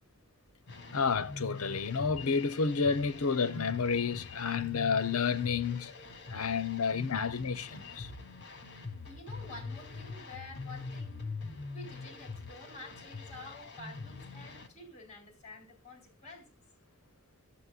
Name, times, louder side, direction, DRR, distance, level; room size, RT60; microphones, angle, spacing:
sound 1, 0.7-14.7, left 3 dB, 55° left, 2.1 m, -44 dB
voice 1, 0.9-5.9 6.3-8.1, left 5 dB, 75° left, 0.9 m, -30 dB
voice 2, 9.1-11.3 11.7-16.6, left 2 dB, 35° left, 4.3 m, -49 dB
14.0 x 7.5 x 2.4 m
head